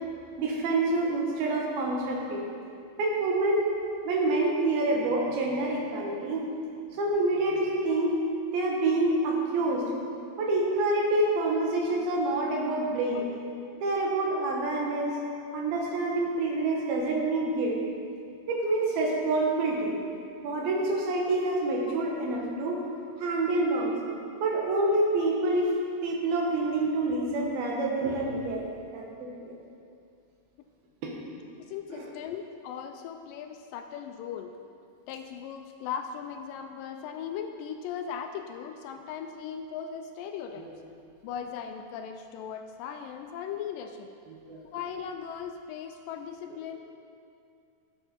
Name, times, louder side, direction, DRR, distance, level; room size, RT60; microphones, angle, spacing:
voice 1, 0.4-2.5 3.0-3.7 4.0-6.5 6.9-8.2 8.5-9.8 10.4-13.2 13.8-15.1 15.5-17.8 18.5-19.9 20.4-22.9 23.2-23.9 24.4-25.7 26.0-28.6 28.9-29.6 31.0-31.1 31.9-32.1 40.6-40.7 44.3-44.6, right 2 dB, 85° right, -1 dB, 3.2 m, -27 dB
voice 2, 13.1-13.5 15.1-15.2 21.9-22.0 31.6-34.5 35.1-40.7 41.2-44.1 44.7-46.8, left 7 dB, 80° left, 6 dB, 2.1 m, -38 dB
12.5 x 7.6 x 4.4 m, 2.5 s
omnidirectional pair, 4.2 m